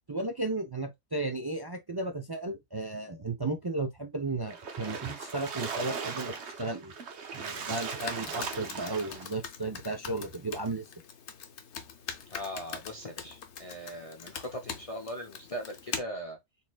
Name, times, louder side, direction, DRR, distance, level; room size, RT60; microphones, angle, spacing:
voice 1, 0.1-6.9 7.3-10.9, right 2 dB, 35° right, 0.4 m, -34 dB
Splash splatter, 4.5-9.3, right 5 dB, 75° right, 1.2 m, -38 dB
Computer keyboard, 7.6-16.0, left 7 dB, 80° left, 1.1 m, -43 dB
voice 2, 12.3-16.4, equal, 35° left, 0.7 m, -40 dB
4.4 x 3.7 x 2.2 m
omnidirectional pair, 1.2 m